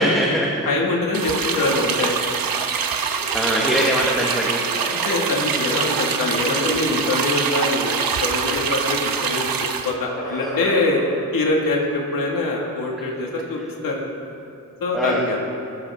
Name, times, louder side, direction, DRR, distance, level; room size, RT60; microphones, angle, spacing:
voice 1, 0.0-0.7 3.3-4.7 10.5-10.6 14.9-15.2, equal, ahead, -4 dB, 1.5 m, -22 dB
voice 2, 0.7-2.3 4.8-9.5 9.8-11.0 11.3-14.1 14.8-15.5, left 2 dB, 75° left, -1 dB, 2.1 m, -24 dB
sound 1, 1.1-2.0 2.4-2.7 3.0-4.2 4.6-5.7 6.3-6.8 7.4-8.2 8.5-9.0 9.8-11.1, equal, 55° left, 3.7 m, -33 dB
sound 2, 1.1-9.9, right 6 dB, 85° right, 1.1 m, -24 dB
21.5 x 13.5 x 3.7 m, 2.7 s
wide cardioid pair, 155°, 34 cm